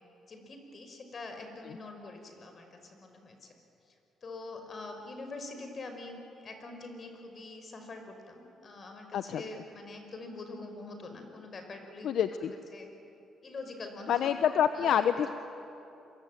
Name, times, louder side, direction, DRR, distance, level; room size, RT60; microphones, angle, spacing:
voice 1, 0.3-3.5 4.2-12.4 12.7-12.9 13.4-15.0, left 2 dB, 45° left, 5 dB, 5.4 m, -44 dB
voice 2, 12.0-12.5 14.1-15.3, left 9 dB, 70° left, 10 dB, 0.9 m, -27 dB
27.5 x 23.5 x 9.2 m, 2.8 s
cardioid pair, 90°, 0 cm